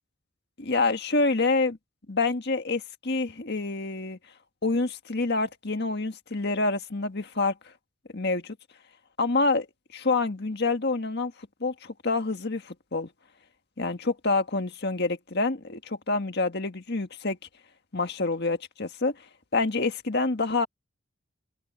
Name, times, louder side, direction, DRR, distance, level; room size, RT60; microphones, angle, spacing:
voice 1, 0.6-1.8 2.1-4.2 4.6-7.5 8.1-8.6 9.2-9.7 9.9-11.3 11.6-13.1 13.8-17.4 17.9-19.2 19.5-20.7, left 3 dB, 50° left, 1.7 m, -27 dB
head